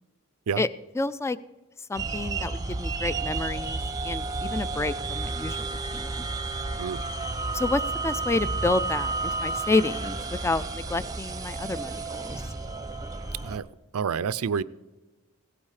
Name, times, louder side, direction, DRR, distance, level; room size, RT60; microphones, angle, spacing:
voice 1, 0.9-1.4 1.9-6.3 7.5-12.4, left 3 dB, 10° left, 16 dB, 0.3 m, -29 dB
sound 1, 1.9-13.6, right 3 dB, 15° right, 0.7 m, -31 dB
voice 2, 13.9-14.6, right 6 dB, 80° right, 17 dB, 0.4 m, -28 dB
17.0 x 8.7 x 4.9 m, 1.2 s
head